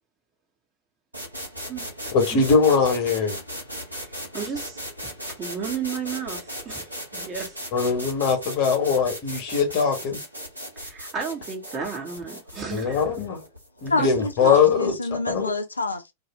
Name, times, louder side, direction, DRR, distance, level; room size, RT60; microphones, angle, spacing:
sound 1, 1.1-14.9, equal, 85° right, 0.9 m, -37 dB
voice 1, 2.1-3.4 7.7-10.2 12.7-13.4 13.8-14.9 15.3-15.5, left 5 dB, 45° left, 1.2 m, -21 dB
voice 2, 4.0-5.1 5.4-7.6 10.8-13.0 14.0-14.1, right 6 dB, 25° right, 1.2 m, -33 dB
voice 3, 13.9-16.1, left 3 dB, 80° left, 0.4 m, -27 dB
2.6 x 2.4 x 3.0 m
figure-of-eight pair, 90°, 0 cm